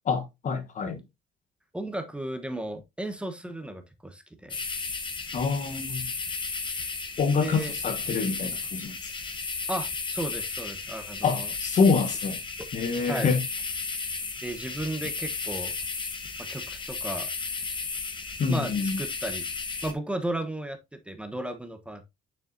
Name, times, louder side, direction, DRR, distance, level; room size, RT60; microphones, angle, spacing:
voice 1, 0.0-1.0 5.3-6.1 7.2-9.1 11.2-12.4 12.7-13.4 18.4-19.0, left 5 dB, 45° left, 1.3 m, -26 dB
voice 2, 1.7-4.6 7.4-7.7 9.7-11.5 12.6-12.7 13.1-13.3 14.4-15.7 16.4-17.3 18.5-19.5 19.8-22.1, right 1 dB, 5° right, 1.1 m, -34 dB
sound 1, 4.5-19.9, left 4 dB, 30° left, 1.4 m, -34 dB
6.9 x 6.6 x 2.7 m
cardioid pair, 110°, 17 cm